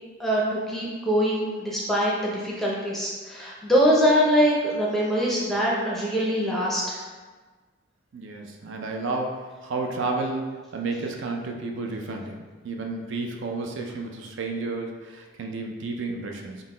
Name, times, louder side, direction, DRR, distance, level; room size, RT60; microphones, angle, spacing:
voice 1, 0.2-7.0, equal, ahead, -5 dB, 0.5 m, -23 dB
voice 2, 8.1-16.7, right 3 dB, 65° right, 2 dB, 0.4 m, -31 dB
3.9 x 2.1 x 3.7 m, 1.4 s
head